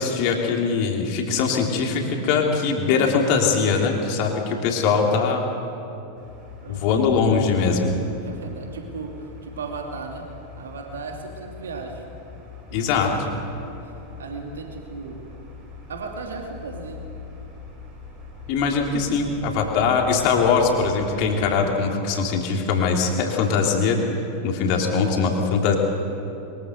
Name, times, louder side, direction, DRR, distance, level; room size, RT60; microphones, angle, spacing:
voice 1, 0.0-5.4 6.7-7.9 12.7-13.1 18.5-24.0 24.4-25.8, left 5 dB, 45° left, 1 dB, 3.2 m, -21 dB
sound 1, 6.1-21.4, left 5 dB, 45° right, 7.2 m, -42 dB
voice 2, 6.6-7.1 8.2-10.3 10.6-12.0 12.7-13.4 13.8-13.9 14.2-15.3 15.9-17.1, right 4 dB, 65° right, 2 dB, 2.7 m, -36 dB
23.0 x 21.5 x 6.6 m, 2.8 s
figure-of-eight pair, 90°, 0 cm